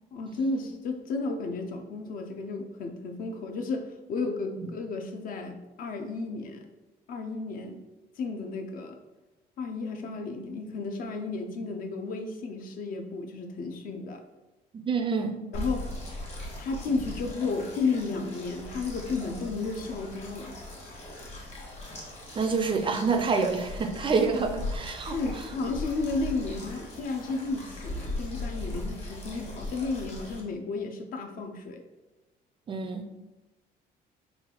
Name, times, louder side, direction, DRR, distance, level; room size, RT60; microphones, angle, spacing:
voice 1, 0.1-6.7 7.1-7.8 8.2-9.0 9.6-14.2 15.5-15.9 16.6-20.6 25.1-31.8, left 3 dB, 55° left, 5 dB, 0.5 m, -33 dB
voice 2, 14.7-15.4 22.4-25.2 32.7-33.1, right 4 dB, 30° right, 6 dB, 0.3 m, -27 dB
sound 1, 15.5-30.4, left 2 dB, 40° left, 1.2 m, -39 dB
3.3 x 2.4 x 3.7 m, 1.1 s
cardioid pair, 110°, 17 cm